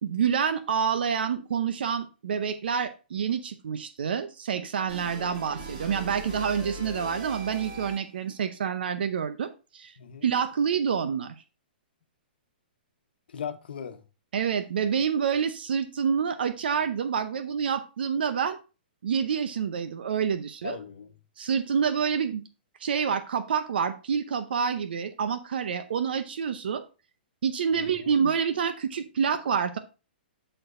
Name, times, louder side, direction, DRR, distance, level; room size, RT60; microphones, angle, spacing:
voice 1, 0.0-9.9 10.2-11.3 14.3-18.6 19.0-20.8 21.4-22.4 22.8-26.8 27.4-29.8, right 7 dB, 75° right, 0.7 m, -27 dB
sound 1, 4.9-8.3, right 2 dB, 45° right, 3.7 m, -40 dB
voice 2, 10.0-10.3 13.3-14.0 20.6-21.1 27.7-28.2, left 7 dB, 75° left, 1.1 m, -38 dB
12.0 x 4.5 x 2.5 m
hypercardioid pair, 140°, 5 cm